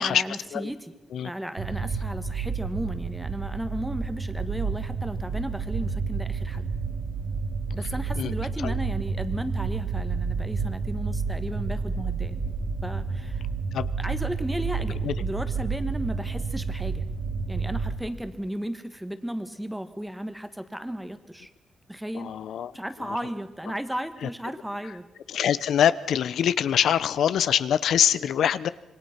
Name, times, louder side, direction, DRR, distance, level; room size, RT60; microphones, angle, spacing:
voice 1, 0.0-0.9 1.2-6.7 7.7-12.4 12.8-13.4 14.0-17.0 17.5-21.5 21.9-22.3 22.7-25.1, equal, 5° right, 10 dB, 1.4 m, -34 dB
sound 1, 1.6-17.9, right 5 dB, 60° right, 2.4 m, -30 dB
voice 2, 22.1-22.7 23.1-23.2 24.2-24.3 25.3-28.7, left 9 dB, 75° left, 16 dB, 0.8 m, -24 dB
26.5 x 23.5 x 5.9 m, 0.98 s
wide cardioid pair, 160°, 0 cm